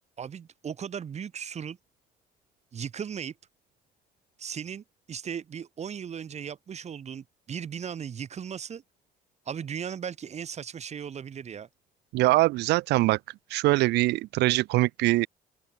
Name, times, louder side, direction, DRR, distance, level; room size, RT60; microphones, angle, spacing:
voice 1, 0.2-1.8 2.7-3.3 4.4-8.8 9.5-11.7, right 7 dB, 40° right, 2.2 m, -37 dB
voice 2, 12.1-13.2 13.5-15.3, right 19 dB, 85° right, 1.2 m, -23 dB
open air
cardioid pair, 110°, 17 cm